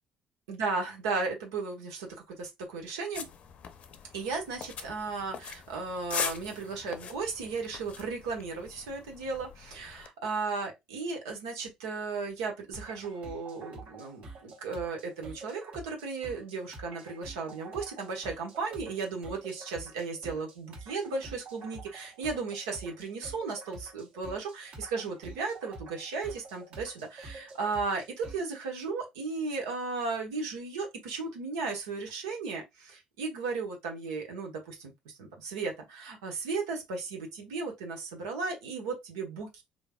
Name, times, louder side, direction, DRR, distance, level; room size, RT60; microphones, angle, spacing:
voice 1, 0.5-3.2 4.1-39.6, right 4 dB, 90° right, 1.2 m, -35 dB
sound 1, 3.1-10.1, left 7 dB, 55° left, 0.6 m, -41 dB
sound 2, 12.7-28.6, right 3 dB, 65° right, 1.7 m, -48 dB
4.0 x 3.2 x 2.3 m
supercardioid pair, 65°, 3 cm